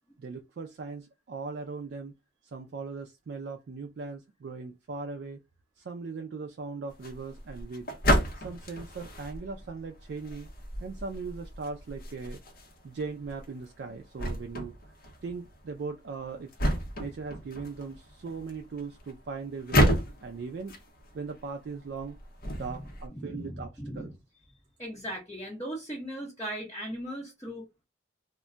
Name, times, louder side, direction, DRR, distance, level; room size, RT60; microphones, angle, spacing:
voice 1, 0.2-2.1 2.4-5.4 5.8-7.9 8.4-10.5 10.8-12.4 12.8-14.7 15.2-16.5 17.0-19.9 20.2-20.8 21.1-22.2 22.5-24.1, right 4 dB, 60° right, 0.3 m, -39 dB
sound 1, 6.9-23.1, equal, 50° left, 0.7 m, -32 dB
voice 2, 23.2-24.1 24.8-27.7, equal, 15° left, 0.8 m, -38 dB
2.2 x 2.1 x 3.7 m
head